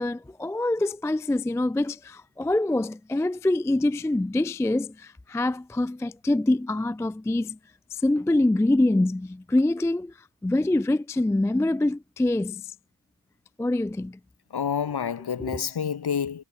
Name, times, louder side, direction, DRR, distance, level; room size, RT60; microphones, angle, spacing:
voice 1, 0.0-7.6 7.9-10.1 10.4-12.7 13.6-14.2 15.4-15.6, left 2 dB, 5° left, 0.3 m, -25 dB
voice 2, 14.5-16.4, left 7 dB, 50° left, 1.5 m, -28 dB
cardioid pair, 85°, 49 cm